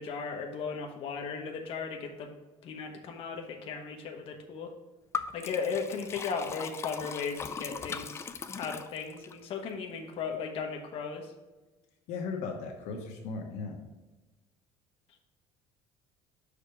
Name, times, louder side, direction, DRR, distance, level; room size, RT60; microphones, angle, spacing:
voice 1, 0.0-2.3 2.6-4.7 5.3-8.2 8.6-11.2, left 5 dB, 50° left, 2 dB, 1.1 m, -36 dB
Liquid, 5.1-9.3, left 6 dB, 20° left, 0.4 m, -39 dB
voice 2, 12.1-13.8, left 4 dB, 75° left, 2 dB, 1.0 m, -37 dB
5.8 x 5.1 x 5.0 m, 1.2 s
cardioid pair, 140°, 12 cm